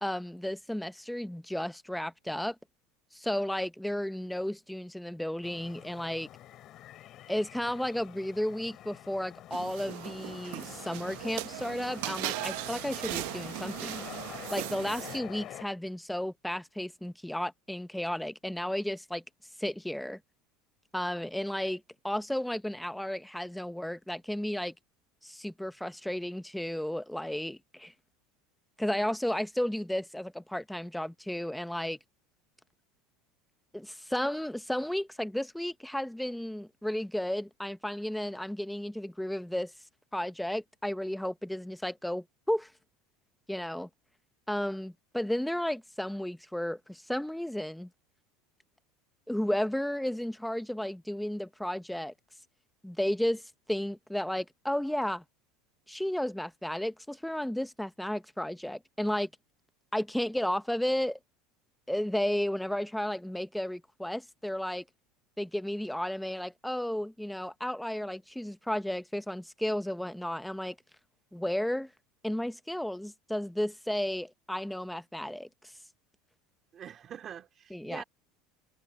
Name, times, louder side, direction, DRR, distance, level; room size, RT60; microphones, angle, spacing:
voice 1, 0.0-2.6 3.1-6.3 7.3-14.1 14.5-19.2 19.6-20.2 20.9-24.7 25.2-27.9 28.8-32.0 33.7-39.7 40.1-42.7 43.5-43.9 44.5-47.9 49.3-52.1 52.8-55.2 55.9-59.3 59.9-61.2 61.9-64.8 65.4-70.8 71.3-71.9 72.2-75.5 77.7-78.0, left 1 dB, ahead, 0.7 m, -33 dB
sound 1, 5.4-15.6, left 13 dB, 40° left, 4.2 m, -47 dB
sound 2, 9.5-15.2, right 20 dB, 65° right, 0.9 m, -38 dB
voice 2, 76.7-78.0, right 9 dB, 30° right, 2.6 m, -44 dB
cardioid pair, 160°, 0 cm